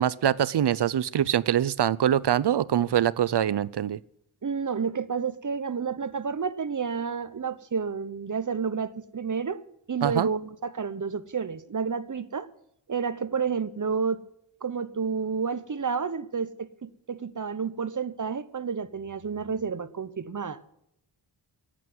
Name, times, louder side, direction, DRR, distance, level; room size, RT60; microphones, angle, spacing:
voice 1, 0.0-4.0 10.0-10.3, right 10 dB, 55° right, 19 dB, 0.6 m, -24 dB
voice 2, 4.4-9.6 9.9-12.5 12.9-14.2 14.6-20.6, right 6 dB, 40° right, 13 dB, 1.0 m, -30 dB
12.5 x 8.4 x 9.3 m, 0.77 s
wide cardioid pair, 80°, 49 cm